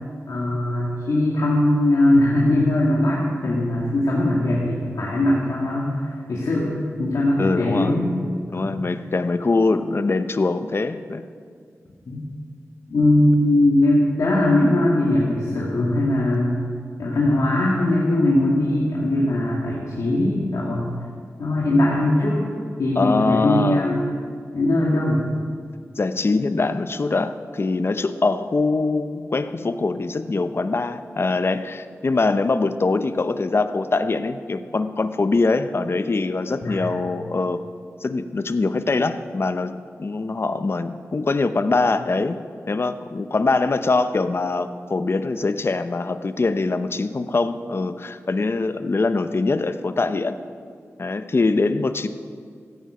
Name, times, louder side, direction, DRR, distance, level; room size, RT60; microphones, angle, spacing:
voice 1, 0.3-8.1 8.5-8.7 12.1-12.2 12.9-16.7 17.0-20.9 21.4-22.4 22.8-24.1 24.5-25.3 36.6-36.9, left 1 dB, 85° left, -5 dB, 2.3 m, -20 dB
voice 2, 7.4-8.0 8.5-11.2 23.0-23.9 26.0-37.6 38.0-42.4 42.7-50.4 51.0-52.1, left 3 dB, 50° left, 10 dB, 0.8 m, -23 dB
16.0 x 15.0 x 5.1 m, 2.1 s
wide cardioid pair, 70°, 5 cm